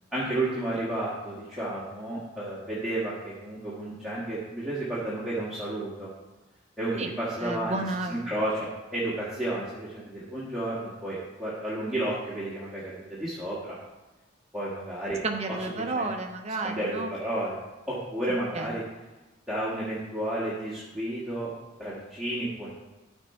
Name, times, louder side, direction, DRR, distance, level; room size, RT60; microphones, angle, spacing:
voice 1, 0.1-6.1 6.8-7.8 8.1-13.8 14.5-15.2 15.5-15.6 15.9-16.1 16.6-17.5 17.9-18.8 19.5-21.5 21.8-22.7, right 1 dB, ahead, -10 dB, 1.6 m, -32 dB
voice 2, 7.4-8.2 15.2-17.1 18.5-18.7, right 2 dB, 35° right, 4 dB, 0.8 m, -31 dB
13.5 x 4.5 x 4.4 m, 1.1 s
head